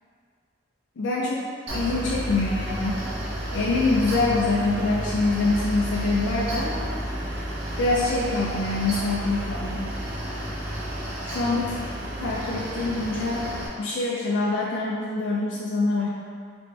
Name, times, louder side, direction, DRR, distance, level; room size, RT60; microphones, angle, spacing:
voice 1, 1.0-3.0 3.5-6.9 7.8-10.0 11.2-11.8 12.2-16.1, left 3 dB, 75° left, -4 dB, 0.4 m, -25 dB
Mechanical fan, 1.7-13.7, equal, 65° right, 0.6 m, -31 dB
4.1 x 2.1 x 3.2 m, 2.2 s
head